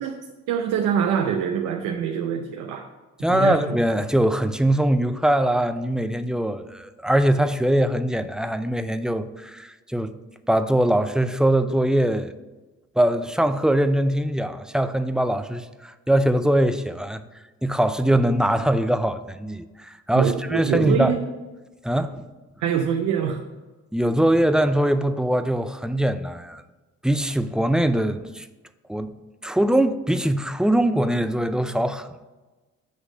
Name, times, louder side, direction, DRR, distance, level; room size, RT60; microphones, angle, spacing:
voice 1, 0.5-2.9 3.3-3.8 20.1-21.2 22.6-23.4, right 8 dB, 90° right, 0.7 m, -24 dB
voice 2, 3.2-10.1 10.5-12.3 13.0-17.2 17.6-21.2 21.8-22.3 23.9-26.6 27.0-28.5 28.9-29.1 29.4-32.2, right 1 dB, ahead, 0.3 m, -22 dB
8.2 x 3.2 x 6.1 m
cardioid pair, 90°, 30 cm